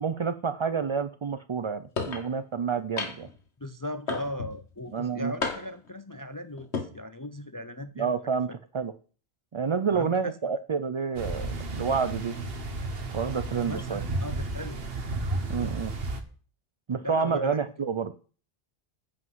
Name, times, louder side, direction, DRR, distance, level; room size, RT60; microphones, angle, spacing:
voice 1, 0.0-3.3 4.9-5.3 8.0-8.9 9.5-12.3 13.1-14.0 15.5-15.9 16.9-18.1, right 6 dB, 40° right, 12 dB, 0.4 m, -29 dB
sound 1, 2.0-2.3 3.0-3.4 4.1-4.6 5.4-5.9 6.6-6.9, left 4 dB, 85° left, 1.7 m, -32 dB
voice 2, 3.6-8.1 8.5-8.6 9.9-10.3 13.7-14.8 17.0-17.6, left 1 dB, 25° left, 10 dB, 0.4 m, -38 dB
sound 2, 11.2-16.2, right 2 dB, 60° right, 1.5 m, -33 dB
11.5 x 5.2 x 7.9 m, 0.40 s
omnidirectional pair, 1.1 m